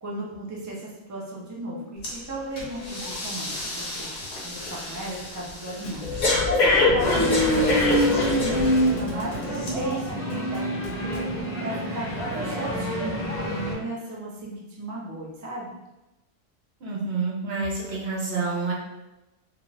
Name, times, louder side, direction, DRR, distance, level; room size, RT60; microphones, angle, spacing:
voice 1, 0.0-15.8, right 1 dB, 25° right, -4 dB, 0.5 m, -35 dB
Breathing, 2.0-2.2 2.6-9.0 9.6-9.7, left 3 dB, 50° left, 0.8 m, -26 dB
Thump thud, 5.8-11.4, left 2 dB, 75° left, 0.8 m, -43 dB
sound 1, 7.0-13.7, right 1 dB, 5° left, 1.0 m, -26 dB
voice 2, 16.8-18.7, right 4 dB, 70° right, -3 dB, 1.0 m, -28 dB
2.4 x 2.4 x 3.2 m, 0.98 s
omnidirectional pair, 1.1 m